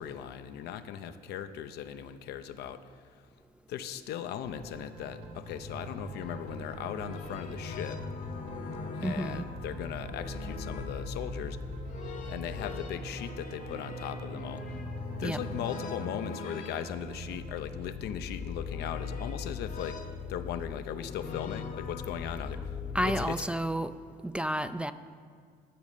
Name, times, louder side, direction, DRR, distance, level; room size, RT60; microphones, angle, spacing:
voice 1, 0.0-3.2 3.7-8.0 9.0-11.8 12.3-14.8 15.2-20.0 20.3-23.4, left 9 dB, 75° left, 10 dB, 0.6 m, -38 dB
sound 1, 4.4-19.2, right 3 dB, 85° right, 2.4 m, -44 dB
sound 2, 5.1-23.3, left 5 dB, 50° left, 1.0 m, -40 dB
voice 2, 9.0-9.5 15.2-15.4 22.9-23.9 24.2-24.9, right 1 dB, 5° right, 11 dB, 0.3 m, -30 dB
11.5 x 6.3 x 6.8 m, 2.1 s
cardioid pair, 110°, 17 cm